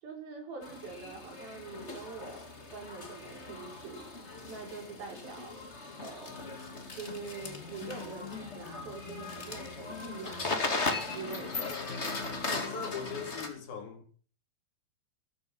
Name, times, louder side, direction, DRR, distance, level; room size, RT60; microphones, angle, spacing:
voice 1, 0.0-2.4 2.7-4.1 4.5-5.5 6.0-10.6 11.1-11.8, right 4 dB, 85° right, 6.9 m, -44 dB
sound 1, 0.6-13.5, left 3 dB, 20° left, 2.0 m, -38 dB
sound 2, 6.3-13.3, left 6 dB, 60° left, 3.0 m, -47 dB
voice 2, 11.5-14.1, left 6 dB, 85° left, 4.6 m, -41 dB
15.0 x 14.0 x 6.0 m
omnidirectional pair, 4.1 m